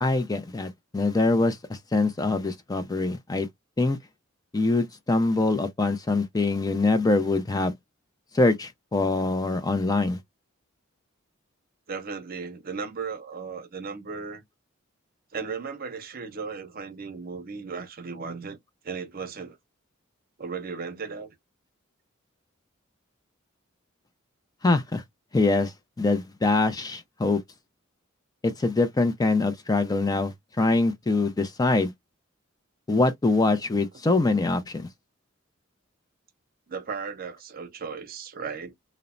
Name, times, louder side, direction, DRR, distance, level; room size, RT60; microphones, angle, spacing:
voice 1, 0.0-3.5 3.8-4.0 4.5-7.7 8.3-10.2 24.6-25.0 25.3-27.4 28.4-31.9 32.9-34.9, left 3 dB, 20° left, 0.4 m, -24 dB
voice 2, 11.9-14.4 15.3-18.6 18.8-19.6 20.4-21.3 36.7-38.7, right 5 dB, 45° right, 0.6 m, -36 dB
3.0 x 2.0 x 2.4 m
head